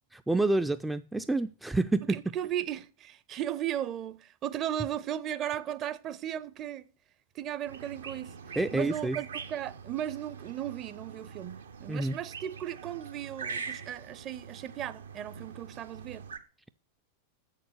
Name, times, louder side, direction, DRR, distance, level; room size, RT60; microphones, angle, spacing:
voice 1, 0.1-2.3 8.6-9.2 11.9-12.2, right 2 dB, 5° right, 0.4 m, -28 dB
voice 2, 2.1-6.9 7.3-8.3 8.7-16.3, right 11 dB, 35° right, 0.7 m, -36 dB
sound 1, 7.7-16.4, right 5 dB, 70° right, 1.0 m, -44 dB
7.8 x 6.6 x 7.9 m
figure-of-eight pair, 90°, 0 cm